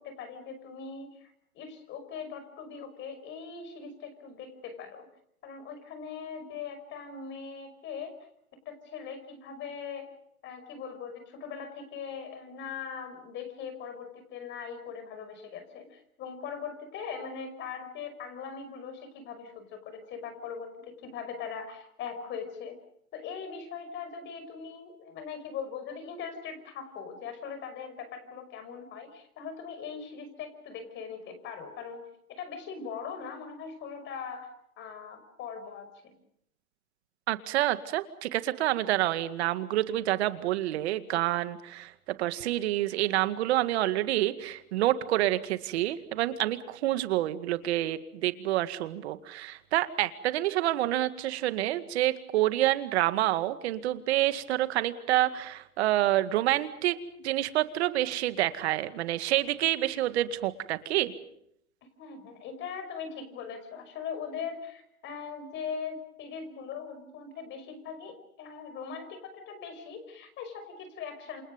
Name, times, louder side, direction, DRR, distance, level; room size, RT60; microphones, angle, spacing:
voice 1, 0.0-5.1 5.4-8.2 8.7-10.1 10.4-22.8 23.1-32.0 32.3-34.5 34.8-36.2 62.0-71.4, left 6 dB, 25° left, 9 dB, 5.5 m, -40 dB
voice 2, 37.3-41.9 42.2-61.1, right 14 dB, 45° right, 12 dB, 2.0 m, -28 dB
28.5 x 27.0 x 5.3 m, 0.73 s
hypercardioid pair, 145°, 44 cm